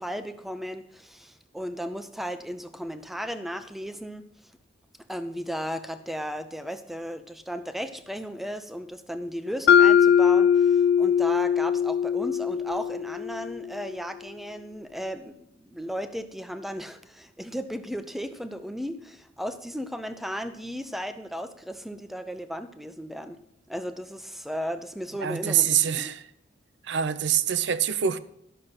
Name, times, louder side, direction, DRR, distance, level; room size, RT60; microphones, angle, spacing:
voice 1, 0.0-4.3 5.1-23.4 23.7-26.1, equal, ahead, 0.6 m, -35 dB
Mallet percussion, 9.7-13.7, left 8 dB, 55° left, 0.3 m, -20 dB
voice 2, 25.2-26.2 26.9-28.2, right 9 dB, 60° right, 0.6 m, -25 dB
12.0 x 6.5 x 5.7 m
head